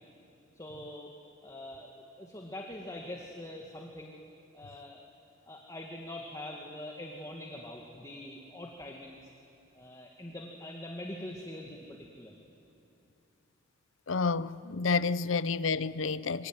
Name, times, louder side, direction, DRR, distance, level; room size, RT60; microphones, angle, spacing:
voice 1, 0.5-1.1 1.4-4.2 4.5-5.1 5.4-9.3 9.7-12.3, left 1 dB, 20° left, 2.1 m, -43 dB
voice 2, 14.1-16.5, left 4 dB, 70° left, 0.7 m, -29 dB
25.5 x 24.5 x 9.5 m
head